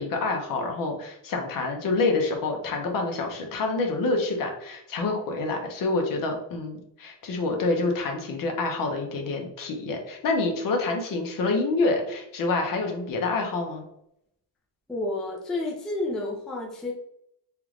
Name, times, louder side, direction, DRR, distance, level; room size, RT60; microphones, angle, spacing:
voice 1, 0.0-13.8, left 3 dB, 50° left, 3 dB, 0.8 m, -27 dB
voice 2, 14.9-16.9, left 2 dB, ahead, -2 dB, 0.4 m, -30 dB
3.4 x 2.4 x 3.1 m, 0.75 s
cardioid pair, 135°, 42 cm